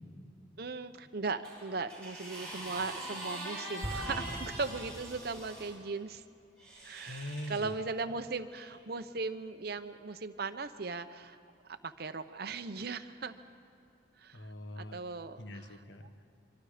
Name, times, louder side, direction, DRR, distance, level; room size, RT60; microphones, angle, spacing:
voice 1, 0.6-6.2 6.8-11.4 11.7-13.3 14.2-14.4 14.7-15.6, right 4 dB, 55° right, 9 dB, 0.9 m, -38 dB
sound 1, 1.4-5.7 6.6-7.6 8.5-8.7, right 1 dB, 5° left, 7.3 m, -43 dB
Explosion, 3.8-5.6, equal, 30° right, 3.7 m, -42 dB
voice 2, 7.1-7.7 14.3-15.0 15.4-16.3, left 1 dB, 75° left, 8 dB, 1.3 m, -43 dB
25.0 x 24.0 x 5.1 m, 2.6 s
head